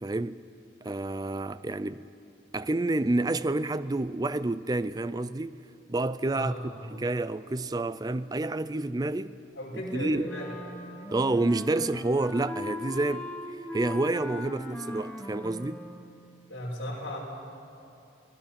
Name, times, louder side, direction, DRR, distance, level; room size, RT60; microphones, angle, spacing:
voice 1, 0.0-0.4 0.8-2.1 2.5-5.6 5.9-6.5 6.9-9.4 9.9-10.3 11.1-15.9, right 2 dB, 20° right, 0.4 m, -29 dB
voice 2, 6.3-6.8 9.5-10.6 16.5-17.2, equal, 70° left, 5.7 m, -35 dB
Wind instrument woodwind instrument, 10.2-16.1, left 1 dB, 10° left, 1.5 m, -39 dB
29.5 x 19.0 x 5.9 m
head